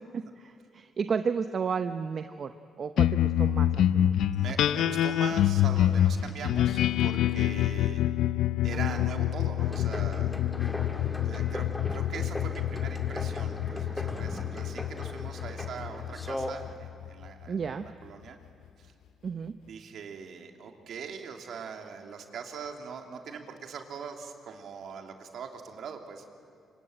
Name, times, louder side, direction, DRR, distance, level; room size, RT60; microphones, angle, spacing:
voice 1, 0.0-4.2 8.7-9.1 17.5-17.8 19.2-19.6, right 6 dB, 50° right, 9 dB, 0.9 m, -33 dB
sound 1, 3.0-17.7, left 11 dB, 80° left, 0.7 m, -27 dB
voice 2, 4.3-8.0 8.6-10.3 11.2-18.4 18.8-18.9 19.7-26.3, right 6 dB, 65° right, 4 dB, 3.0 m, -42 dB
sound 2, 9.6-16.8, left 1 dB, 15° left, 2.2 m, -38 dB
26.0 x 24.5 x 9.0 m, 2.4 s
cardioid pair, 90°, 0 cm